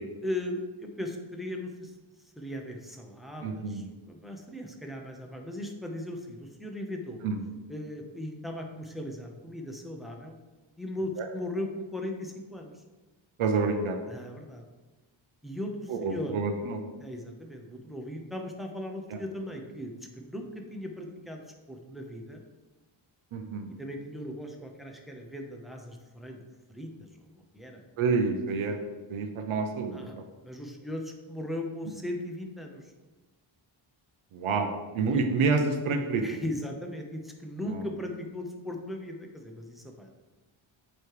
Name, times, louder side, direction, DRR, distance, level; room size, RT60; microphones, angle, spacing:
voice 1, 0.2-1.9 2.4-7.2 7.7-10.3 10.8-12.8 14.1-14.7 15.4-16.4 17.0-22.4 23.8-26.4 26.7-27.8 29.9-30.1 30.4-32.9 35.1-35.2 36.2-40.2, left 1 dB, ahead, 2 dB, 0.7 m, -38 dB
voice 2, 3.4-3.8 7.2-7.4 11.2-11.3 13.4-14.0 15.9-16.8 19.1-19.2 23.3-23.7 28.0-28.8 29.1-30.2 34.3-36.2 37.7-37.8, right 4 dB, 80° right, 5 dB, 0.8 m, -28 dB
8.2 x 3.3 x 4.7 m, 1.2 s
wide cardioid pair, 130°, 48 cm